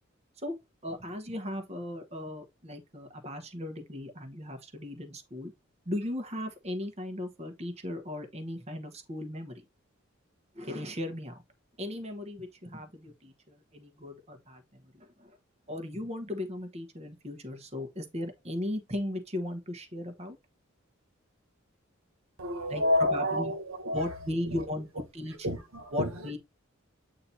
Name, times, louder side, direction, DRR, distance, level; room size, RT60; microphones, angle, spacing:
voice 1, 0.8-5.5 5.8-9.6 10.5-11.4 11.8-15.4 15.7-20.4 22.7-23.5 23.9-25.5 25.9-26.4, left 1 dB, 30° right, 1.2 m, -37 dB
voice 2, 22.4-24.1 24.5-24.6 25.4-26.1, left 1 dB, 85° right, 1.4 m, -29 dB
8.5 x 2.9 x 4.2 m
head